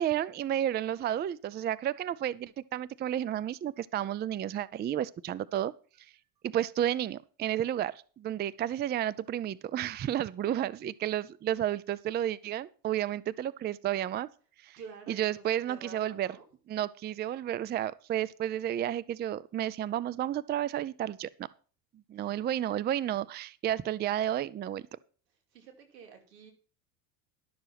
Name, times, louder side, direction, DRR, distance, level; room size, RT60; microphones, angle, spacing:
voice 1, 0.0-5.7 6.4-14.3 14.6-14.8 15.1-16.3 16.7-21.5 22.1-25.0, right 11 dB, 20° right, 0.4 m, -32 dB
voice 2, 14.8-16.4 22.2-22.3 25.5-26.5, right 5 dB, 90° right, 2.9 m, -49 dB
12.0 x 6.8 x 5.8 m
hypercardioid pair, 85°, 48 cm